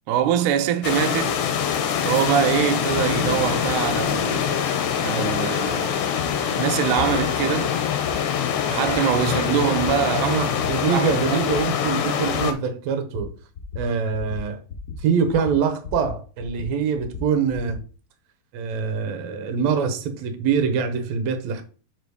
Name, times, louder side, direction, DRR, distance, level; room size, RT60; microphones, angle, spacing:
voice 1, 0.1-1.5 2.0-4.7 5.0-7.7 8.7-10.4 10.8-11.5, right 9 dB, 90° right, 2.1 m, -24 dB
sound 1, 0.8-12.5, left 8 dB, 75° left, 2.1 m, -24 dB
sound 2, 6.2-6.3 7.1-7.2 8.0-8.2 8.9-9.0 9.8-9.9 10.6-10.7 11.5-11.6 12.3-12.4 13.1-13.3 13.5-13.9 14.1-14.4 14.7-15.0 15.3-16.1 16.4-17.8, left 4 dB, 40° left, 1.2 m, -36 dB
voice 2, 10.2-13.3 13.8-14.6 15.0-17.8 18.5-21.6, right 6 dB, 70° right, 2.0 m, -24 dB
5.0 x 4.7 x 4.7 m
omnidirectional pair, 3.5 m